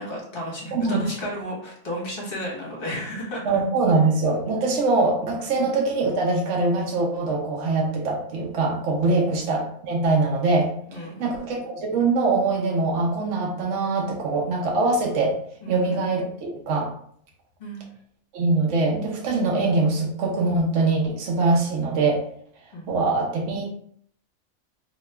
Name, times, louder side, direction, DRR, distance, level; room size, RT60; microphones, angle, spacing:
voice 1, 0.0-3.4 5.6-5.7 9.1-9.2 10.9-11.4 15.6-16.0 17.6-17.9 22.7-23.1, equal, 45° left, -3 dB, 1.1 m, -33 dB
voice 2, 0.7-1.0 3.5-10.7 11.2-15.3 15.7-16.9 18.3-22.2 22.9-23.8, right 3 dB, 65° right, -1 dB, 0.9 m, -23 dB
2.8 x 2.3 x 3.1 m, 0.62 s
omnidirectional pair, 1.5 m